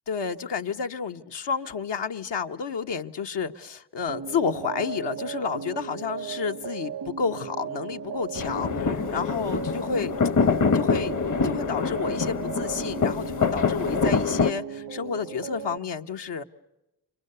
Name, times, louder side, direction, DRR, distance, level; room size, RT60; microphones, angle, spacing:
voice 1, 0.1-10.2 10.7-11.2 11.4-16.4, left 6 dB, 85° left, 1.1 m, -30 dB
sound 1, 4.1-15.8, right 8 dB, 80° right, 1.0 m, -36 dB
sound 2, 8.3-14.5, left 5 dB, 45° left, 0.9 m, -25 dB
28.5 x 25.0 x 6.7 m
cardioid pair, 55°, 41 cm